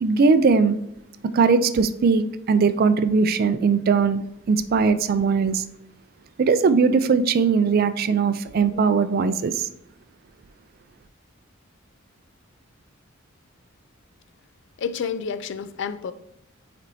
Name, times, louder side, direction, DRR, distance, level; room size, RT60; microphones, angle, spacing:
voice 1, 0.0-0.8 1.3-5.6 6.4-9.7, right 5 dB, 50° right, 0.3 m, -20 dB
voice 2, 14.8-16.1, left 6 dB, 60° left, 0.4 m, -29 dB
9.0 x 4.3 x 2.7 m
head